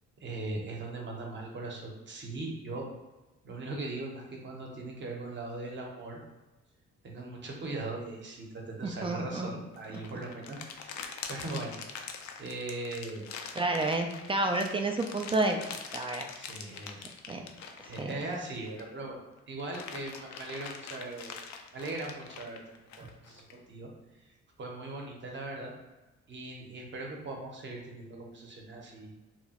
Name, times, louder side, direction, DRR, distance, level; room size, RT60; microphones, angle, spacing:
voice 1, 0.2-2.9 3.4-6.2 7.0-11.8 12.4-13.3 16.4-17.4 17.8-19.2 19.5-21.3 21.7-22.6 23.0-23.9 24.2-24.3 24.6-25.7 26.3-29.1, right 2 dB, 40° right, 0 dB, 0.8 m, -39 dB
voice 2, 8.8-9.5 13.6-15.6 15.9-16.3 17.3-17.4 17.8-18.2 23.0-23.1, right 2 dB, 20° right, 3 dB, 0.3 m, -30 dB
sound 1, 9.7-19.0 19.4-23.5, left 6 dB, 70° left, 0.5 m, -44 dB
2.9 x 2.3 x 2.8 m, 1.1 s
cardioid pair, 90°, 30 cm